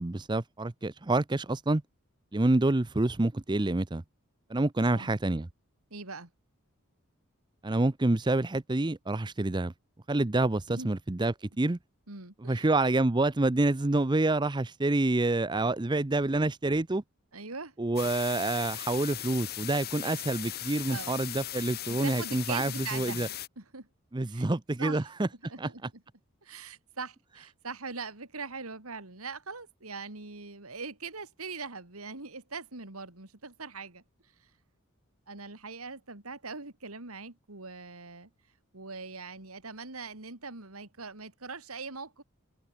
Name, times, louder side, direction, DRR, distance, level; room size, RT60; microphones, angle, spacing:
voice 1, 0.0-1.8 2.3-4.0 4.5-5.5 7.6-9.7 10.1-11.8 12.4-17.0 17.8-23.3 24.1-25.3 25.6-25.7, right 2 dB, 20° right, 0.6 m, -27 dB
voice 2, 5.9-6.3 10.7-10.9 12.1-12.7 17.3-17.7 20.9-21.2 21.8-23.9 24.3-24.5 24.8-25.1 25.4-26.0 26.4-34.0 35.3-38.3 38.7-42.2, right 4 dB, 85° right, 3.1 m, -41 dB
sound 1, 18.0-23.5, left 13 dB, 45° left, 1.4 m, -38 dB
head